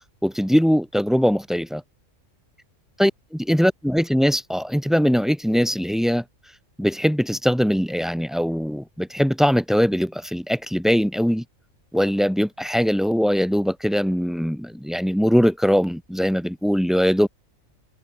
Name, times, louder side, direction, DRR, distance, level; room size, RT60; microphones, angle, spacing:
voice 1, 0.2-1.8 3.0-6.2 6.8-11.4 11.9-17.3, equal, ahead, 6.4 m, -21 dB
omnidirectional pair, 1.4 m